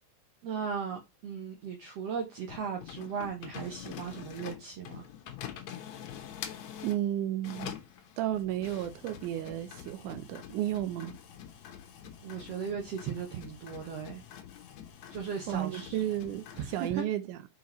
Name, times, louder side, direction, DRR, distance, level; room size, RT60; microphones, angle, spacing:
voice 1, 0.4-5.0 11.0-11.1 12.2-14.2 15.1-16.0 16.6-17.0, right 6 dB, 65° right, 1.9 m, -37 dB
sound 1, 2.5-7.0 7.4-16.9, left 9 dB, 70° left, 2.2 m, -46 dB
voice 2, 6.8-7.7 8.2-11.1 15.5-17.4, right 12 dB, 90° right, 2.1 m, -33 dB
5.8 x 4.7 x 4.1 m
omnidirectional pair, 3.5 m